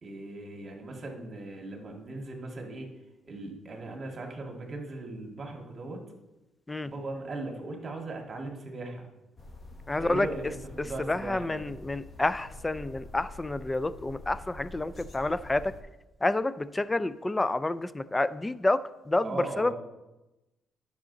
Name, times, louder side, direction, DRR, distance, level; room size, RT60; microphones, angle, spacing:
voice 1, 0.0-2.9 3.2-6.0 6.8-9.1 10.0-11.7 19.2-19.7, right 2 dB, 40° right, 1 dB, 1.9 m, -38 dB
sound 1, 9.4-15.8, left 2 dB, 40° left, 1.3 m, -46 dB
voice 2, 9.9-10.3 10.8-15.7 16.2-19.7, left 2 dB, 15° left, 15 dB, 0.4 m, -29 dB
9.7 x 6.2 x 4.0 m, 1.0 s
cardioid pair, 90°, 0 cm